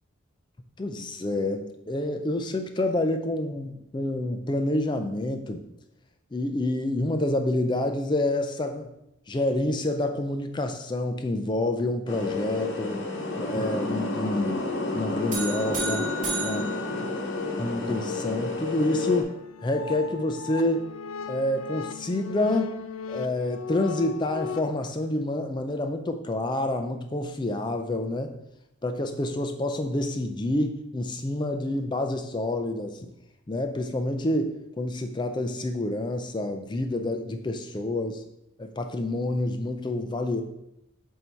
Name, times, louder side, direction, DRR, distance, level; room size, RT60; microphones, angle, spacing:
voice 1, 0.8-5.6 6.3-8.9 9.3-13.0 13.3-16.1 16.4-16.7 17.0-17.1 17.6-19.3 19.6-20.8 21.3-22.8 23.1-28.3 28.8-33.0 33.5-38.2 38.6-40.4, left 1 dB, 20° left, 6 dB, 0.4 m, -28 dB
sound 1, 12.1-19.2, left 2 dB, 60° left, 0.9 m, -30 dB
sound 2, 15.3-17.8, right 1 dB, 40° right, 1.8 m, -33 dB
sound 3, 19.3-24.6, left 6 dB, 85° left, 0.4 m, -37 dB
8.1 x 2.8 x 4.4 m, 0.85 s
head